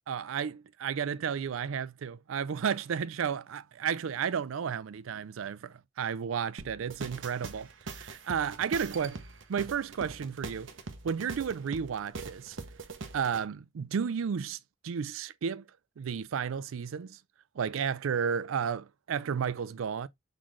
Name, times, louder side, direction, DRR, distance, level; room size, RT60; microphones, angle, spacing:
voice 1, 0.1-9.2 9.5-10.7 11.0-12.6 13.1-14.6 14.8-15.6 16.0-17.2 17.6-20.1, right 7 dB, 85° right, 0.4 m, -32 dB
sound 1, 6.6-13.4, right 3 dB, 65° right, 0.8 m, -42 dB
3.9 x 3.7 x 3.0 m
head